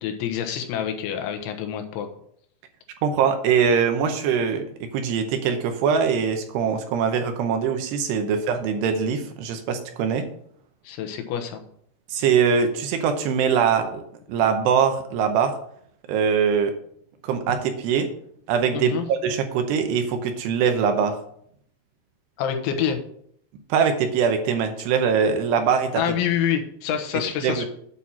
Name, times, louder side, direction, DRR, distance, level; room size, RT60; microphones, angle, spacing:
voice 1, 0.0-2.1 10.9-11.6 18.7-19.1 22.4-23.0 26.0-27.7, left 8 dB, 85° left, 5 dB, 3.5 m, -26 dB
voice 2, 3.0-10.3 12.1-14.0 14.3-15.5 16.1-16.7 17.2-18.1 18.5-21.2 23.7-26.0 27.4-27.7, right 6 dB, 80° right, 6 dB, 2.8 m, -22 dB
9.2 x 4.2 x 7.4 m, 0.67 s
omnidirectional pair, 5.2 m